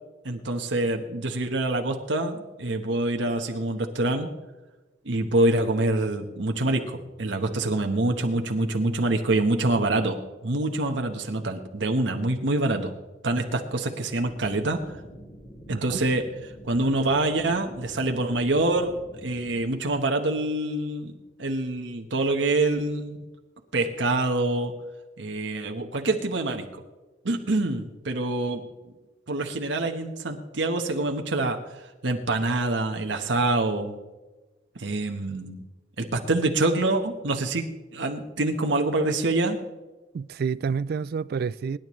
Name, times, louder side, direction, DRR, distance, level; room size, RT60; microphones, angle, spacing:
voice 1, 0.2-4.3 5.0-12.9 13.2-14.8 15.7-16.2 16.6-18.9 19.2-21.1 21.4-23.2 23.7-24.7 25.2-26.7 27.2-28.6 29.3-33.9 34.7-35.6 36.0-37.7 37.9-39.6, right 2 dB, 85° right, 1.2 m, -26 dB
sound 1, 14.2-19.7, equal, 35° left, 2.6 m, -46 dB
voice 2, 15.7-16.0 40.1-41.8, right 5 dB, 55° right, 0.3 m, -29 dB
24.5 x 10.5 x 3.2 m
head